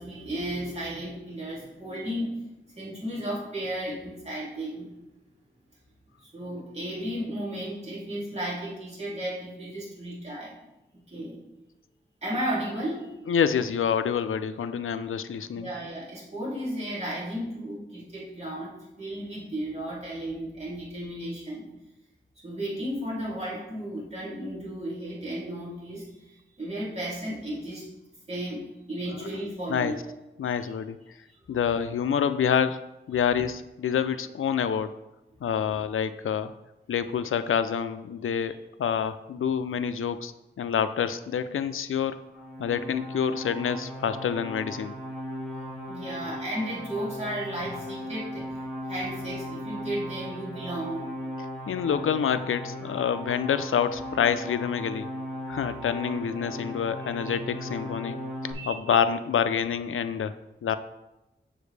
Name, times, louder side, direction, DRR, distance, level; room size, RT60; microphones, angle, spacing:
voice 1, 0.0-2.3 2.7-4.9 6.2-10.5 11.1-11.4 12.2-13.4 15.5-21.7 22.4-27.9 28.3-30.0 30.5-30.7 38.3-38.5 45.9-48.6 48.9-51.1 57.0-57.4 58.5-59.0, right 1 dB, 30° right, -7 dB, 2.8 m, -34 dB
voice 2, 13.3-15.7 29.2-29.3 29.7-29.9 30.4-31.0 31.5-32.8 33.1-34.9 35.4-36.5 36.9-38.5 38.8-40.3 40.6-42.2 42.6-44.9 51.7-55.1 55.5-60.3 60.6-60.8, left 7 dB, 85° left, 11 dB, 0.4 m, -27 dB
sound 1, 42.3-58.5, equal, ahead, 2.1 m, -37 dB
7.1 x 6.8 x 3.3 m, 0.95 s
wide cardioid pair, 75°, 20 cm